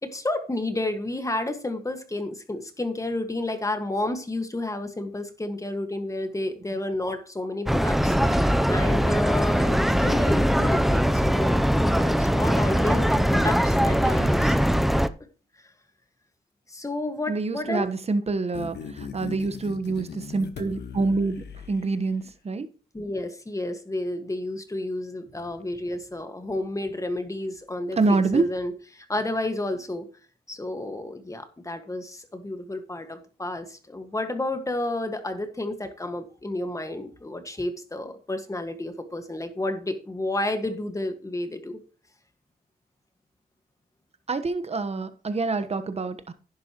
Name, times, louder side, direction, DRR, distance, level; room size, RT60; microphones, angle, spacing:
voice 1, 0.0-14.6 16.7-17.9 22.9-30.0 30.5-41.8, left 2 dB, 20° left, 1.7 m, -31 dB
sound 1, 7.7-15.1, equal, ahead, 0.6 m, -21 dB
voice 2, 17.3-22.7 28.0-28.5 44.3-46.3, right 3 dB, 40° right, 1.2 m, -26 dB
sound 2, 18.5-22.3, left 6 dB, 85° left, 1.4 m, -39 dB
11.0 x 10.5 x 3.0 m
cardioid pair, 90°, 17 cm